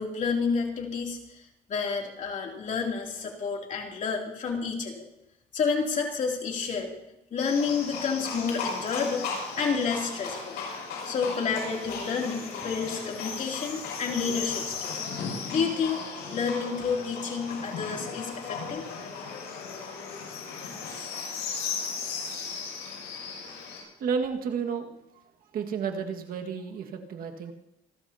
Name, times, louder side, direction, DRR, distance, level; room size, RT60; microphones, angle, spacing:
voice 1, 0.0-1.4 1.7-5.0 5.5-6.9 7.3-9.3 9.6-10.6 11.0-15.0 15.5-18.9, left 5 dB, 50° left, 0 dB, 3.0 m, -30 dB
Livestock farm animals working animals, 7.4-23.8, left 5 dB, 80° left, 6.5 m, -36 dB
voice 2, 24.0-24.9 25.5-27.5, right 6 dB, 60° right, 3 dB, 1.8 m, -31 dB
26.5 x 13.5 x 2.9 m, 0.85 s
cardioid pair, 110°, 17 cm